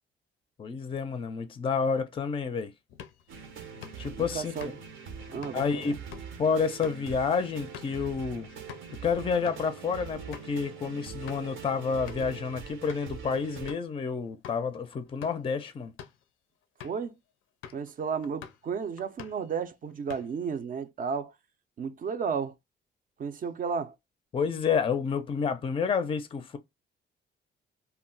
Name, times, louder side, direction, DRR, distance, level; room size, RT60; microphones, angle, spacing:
voice 1, 0.6-2.7 4.0-4.5 5.5-6.0 6.4-8.5 9.0-15.9 24.3-26.6, left 5 dB, 25° left, 0.4 m, -29 dB
sound 1, 2.9-8.9 9.3-9.6 10.0-10.1 10.3-10.5 11.0-11.6 12.1-12.4 12.9-13.2 13.7-13.9 14.4-14.6 15.1-15.5 15.8-16.2 16.8-17.1 17.6-17.9 18.2-18.7 19.0-19.5 19.9-20.5, left 9 dB, 90° left, 0.4 m, -47 dB
sound 2, 3.3-13.8, right 7 dB, 80° right, 0.7 m, -43 dB
voice 2, 4.3-4.7 5.3-5.8 16.8-17.1 17.7-21.3 21.8-22.5 23.2-23.9, right 6 dB, 45° right, 0.5 m, -33 dB
2.2 x 2.0 x 3.7 m
cardioid pair, 90°, 20 cm